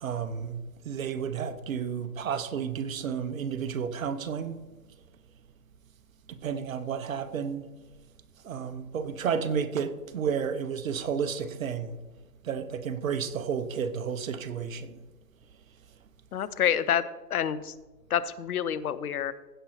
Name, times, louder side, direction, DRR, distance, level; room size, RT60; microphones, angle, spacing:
voice 1, 0.0-4.6 6.3-7.6 8.4-11.9 12.4-15.0, right 7 dB, 55° right, 1.0 m, -32 dB
voice 2, 16.3-17.0 17.3-17.7 18.1-19.3, left 9 dB, 60° left, 0.8 m, -27 dB
16.0 x 5.5 x 4.4 m
hypercardioid pair, 145°, 49 cm